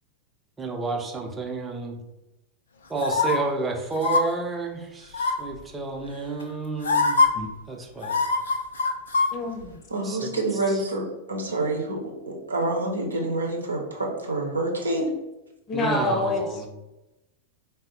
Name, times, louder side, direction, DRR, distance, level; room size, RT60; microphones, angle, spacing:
voice 1, 0.6-2.0 2.9-7.2 7.7-8.1 10.0-10.3 10.7-10.8 15.7-16.7, right 3 dB, 15° right, 2 dB, 0.6 m, -30 dB
sound 1, 3.0-3.4 4.0-4.2 5.1-5.5 6.4-6.5 6.8-7.3 8.0-9.3 9.6-9.7, left 4 dB, 70° left, 0.4 m, -22 dB
voice 2, 9.3-9.8 15.7-16.4, left 2 dB, 30° left, 3 dB, 0.7 m, -26 dB
voice 3, 9.9-15.1, right 2 dB, 75° right, 0 dB, 0.7 m, -27 dB
3.9 x 2.0 x 3.8 m, 0.98 s
figure-of-eight pair, 90°, 0 cm